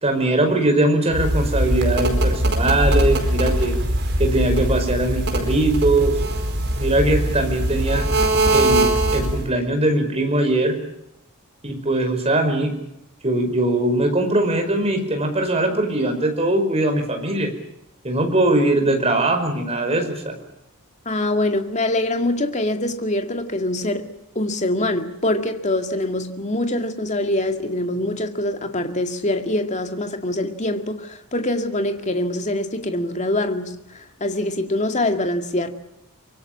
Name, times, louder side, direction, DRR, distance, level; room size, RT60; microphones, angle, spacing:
voice 1, 0.0-3.8 4.2-6.1 6.8-8.0 8.5-10.8 11.6-12.7 13.2-17.5 18.0-20.4, right 1 dB, 30° right, 5.3 m, -21 dB
sound 1, 1.1-9.5, right 1 dB, 50° right, 4.6 m, -21 dB
voice 2, 21.1-35.7, left 1 dB, 30° left, 2.2 m, -24 dB
25.0 x 23.5 x 7.5 m
head